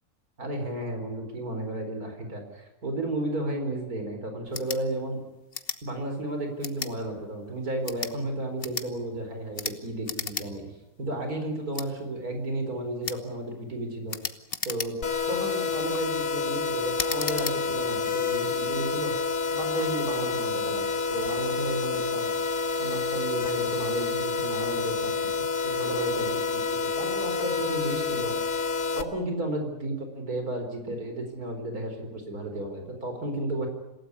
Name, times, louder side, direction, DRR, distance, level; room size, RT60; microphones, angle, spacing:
voice 1, 0.4-5.2 5.8-14.2 14.6-14.9 15.3-19.2 19.5-22.3 22.8-25.2 25.6-28.3 28.9-33.7, right 1 dB, 80° right, 5 dB, 4.8 m, -33 dB
sound 1, 4.5-4.8 5.5-5.8 6.6-6.9 7.7-8.2 8.6-8.9 9.5-9.8 10.0-10.5 10.8-10.9 11.7-11.9 13.0-13.2 14.1-15.2 15.7-16.0 17.0-17.6, left 5 dB, 40° left, 1.4 m, -34 dB
sound 2, 15.0-29.0, left 4 dB, 85° left, 2.1 m, -28 dB
27.5 x 17.0 x 9.8 m, 1.0 s
omnidirectional pair, 1.5 m